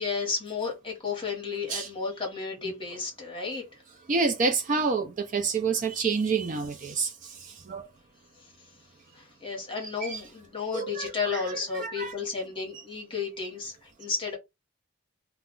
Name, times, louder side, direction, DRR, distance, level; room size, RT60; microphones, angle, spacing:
voice 1, 0.0-3.6 9.1-14.4, left 5 dB, 25° left, 1.0 m, -33 dB
voice 2, 4.1-7.9 10.0-10.2 10.7-12.2, right 4 dB, 40° right, 0.4 m, -28 dB
2.3 x 2.1 x 3.7 m
head